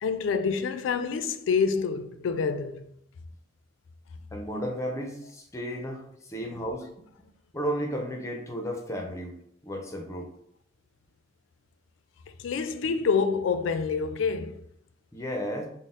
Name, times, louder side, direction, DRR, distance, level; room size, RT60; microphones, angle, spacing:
voice 1, 0.0-2.8 12.4-14.6, left 5 dB, 85° left, 0.3 m, -27 dB
voice 2, 4.3-6.9 7.5-9.4 9.6-10.3 15.1-15.7, equal, 15° left, 0.5 m, -33 dB
4.0 x 2.0 x 3.6 m
head